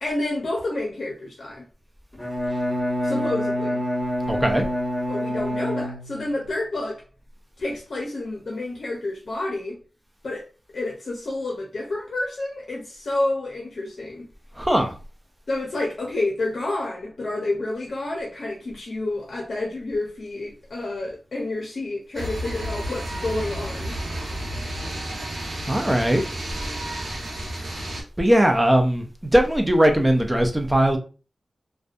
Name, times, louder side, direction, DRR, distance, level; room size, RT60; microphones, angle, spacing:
voice 1, 0.0-1.7 3.0-3.8 5.1-7.0 7.6-9.8 10.2-10.5 10.7-14.3 15.5-24.0, left 2 dB, 65° left, 0.6 m, -29 dB
Bowed string instrument, 2.1-6.4, equal, 15° left, 1.2 m, -26 dB
voice 2, 4.3-4.6 14.6-14.9 25.7-26.2 27.6-27.7 28.2-31.0, right 1 dB, 10° right, 0.4 m, -19 dB
sound 1, 22.1-28.0, right 1 dB, 85° right, 0.9 m, -31 dB
2.6 x 2.2 x 2.4 m
wide cardioid pair, 130°, 0 cm